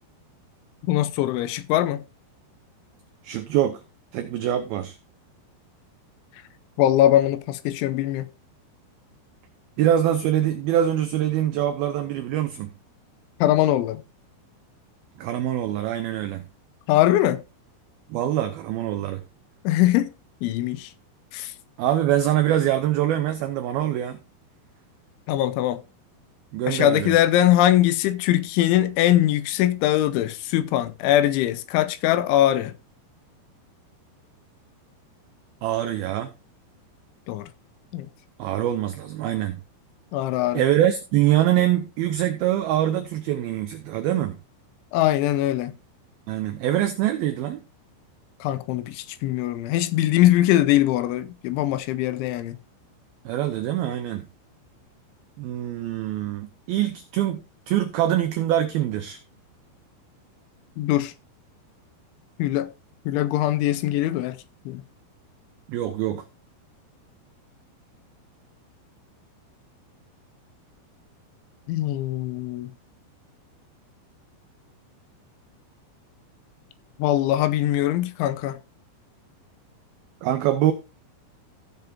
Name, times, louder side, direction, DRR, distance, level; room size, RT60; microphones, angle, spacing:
voice 1, 0.9-2.0 6.8-8.3 13.4-14.0 16.9-17.4 19.6-20.1 20.4-20.9 21.3-21.5 25.3-25.8 26.7-32.7 37.3-37.5 37.9-38.1 40.1-40.6 44.9-45.7 48.4-52.6 60.8-61.1 62.4-62.7 63.1-64.4 64.7-64.8 71.7-72.7 77.0-78.6, left 13 dB, 85° left, 3.1 m, -21 dB
voice 2, 3.2-3.8 4.1-5.0 9.8-12.7 15.2-16.5 18.1-19.2 21.8-24.2 26.5-27.2 35.6-36.3 38.4-39.6 40.5-44.4 46.3-47.6 53.3-54.3 55.4-59.2 65.7-66.3 80.2-80.7, right 12 dB, 90° right, 2.1 m, -24 dB
15.5 x 7.0 x 2.8 m
omnidirectional pair, 5.4 m